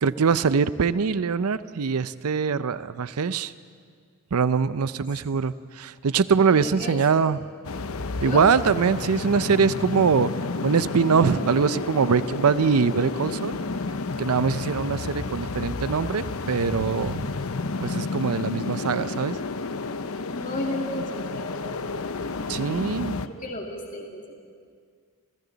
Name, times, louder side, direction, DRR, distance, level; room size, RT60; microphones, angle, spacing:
voice 1, 0.0-3.5 4.3-7.4 8.2-10.3 10.6-13.6 14.2-17.3 17.8-19.4 22.5-23.1, right 5 dB, 80° right, 15 dB, 0.5 m, -23 dB
voice 2, 6.5-7.0 8.2-8.5 20.3-21.8 23.1-24.3, left 1 dB, 35° left, 0 dB, 2.2 m, -34 dB
sound 1, 7.6-23.3, left 3 dB, 70° left, 0.8 m, -31 dB
29.5 x 28.0 x 4.0 m, 2.1 s
head